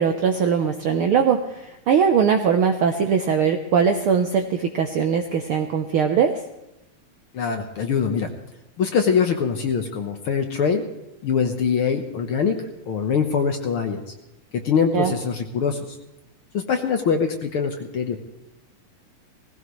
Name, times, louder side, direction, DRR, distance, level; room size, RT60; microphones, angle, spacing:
voice 1, 0.0-6.4 14.9-15.1, right 7 dB, 70° right, 5 dB, 1.3 m, -21 dB
voice 2, 7.3-8.3 8.8-10.8 11.2-12.5 12.9-14.0 14.6-15.8 16.5-18.2, left 6 dB, 60° left, 5 dB, 1.6 m, -23 dB
19.0 x 16.5 x 3.2 m, 0.94 s
omnidirectional pair, 3.4 m